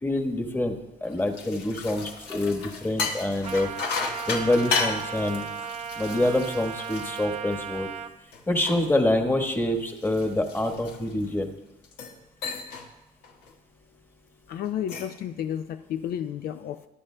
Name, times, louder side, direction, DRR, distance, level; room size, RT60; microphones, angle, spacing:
voice 1, 0.0-3.7 4.3-5.5 5.9-7.9 8.5-11.5, left 1 dB, 10° left, 4 dB, 1.3 m, -26 dB
sound 1, 1.1-7.9 8.3-11.3 11.8-12.2 12.4-12.9 13.2-13.5 14.6-15.2, left 5 dB, 80° left, 1.5 m, -34 dB
Trumpet, 3.4-8.1, right 7 dB, 40° right, 0.8 m, -36 dB
voice 2, 14.5-16.9, left 10 dB, 65° left, 9 dB, 0.5 m, -32 dB
21.0 x 10.5 x 2.2 m, 1.0 s
cardioid pair, 110°, 17 cm